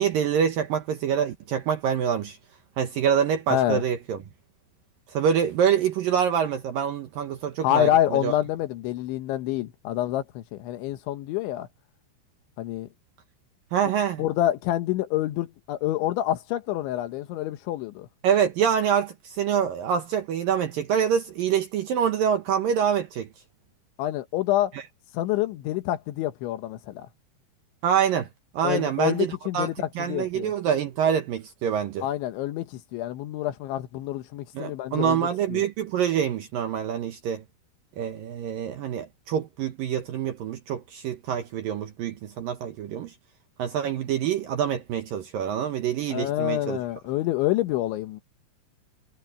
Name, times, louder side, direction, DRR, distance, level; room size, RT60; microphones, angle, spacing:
voice 1, 0.0-2.4 2.8-4.2 5.1-8.3 13.7-14.2 18.2-23.3 24.7-24.8 27.8-28.3 28.5-29.7 30.0-32.1 34.5-37.4 38.0-43.1 43.6-46.8, right 8 dB, 70° right, 2.3 m, -26 dB
voice 2, 3.5-3.8 7.6-11.7 12.6-12.9 14.2-18.1 24.0-24.7 25.1-27.1 28.6-29.7 30.1-30.5 32.0-35.6 46.1-48.2, left 13 dB, 85° left, 3.6 m, -27 dB
omnidirectional pair, 5.2 m